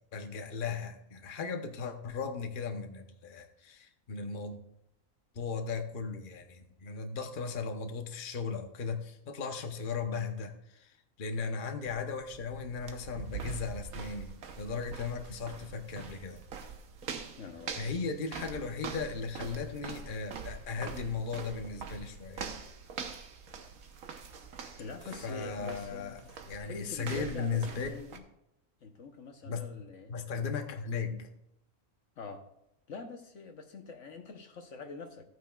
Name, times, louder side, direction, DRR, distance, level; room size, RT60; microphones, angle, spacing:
voice 1, 0.1-4.6 5.3-16.4 17.8-22.5 25.2-26.2 26.5-27.9 29.4-29.6 30.1-31.3, left 5 dB, 40° left, 5 dB, 1.0 m, -37 dB
sound 1, 11.9-28.2, right 6 dB, 85° right, 1.4 m, -44 dB
voice 2, 17.4-17.9 24.8-26.3 26.6-28.2 28.8-30.1 32.2-32.5 32.9-35.2, left 4 dB, 65° left, 5 dB, 1.2 m, -45 dB
14.5 x 9.2 x 2.4 m, 0.83 s
omnidirectional pair, 1.4 m